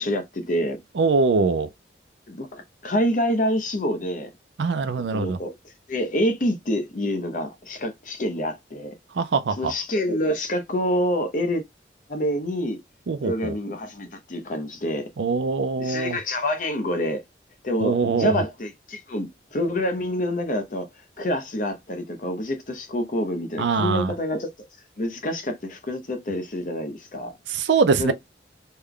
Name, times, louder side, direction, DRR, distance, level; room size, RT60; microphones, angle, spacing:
voice 1, 0.0-0.8 2.3-4.3 5.1-5.5 5.9-8.9 9.6-11.6 12.1-12.8 13.2-15.1 15.8-17.2 17.6-20.9 21.2-24.5 25.0-27.3 28.0-28.1, equal, 45° left, 0.7 m, -27 dB
voice 2, 1.0-1.7 4.6-5.4 9.1-9.7 13.1-13.5 15.2-16.2 17.8-18.4 23.6-24.1 27.5-28.1, right 4 dB, 85° right, 0.5 m, -22 dB
3.3 x 2.2 x 3.7 m
head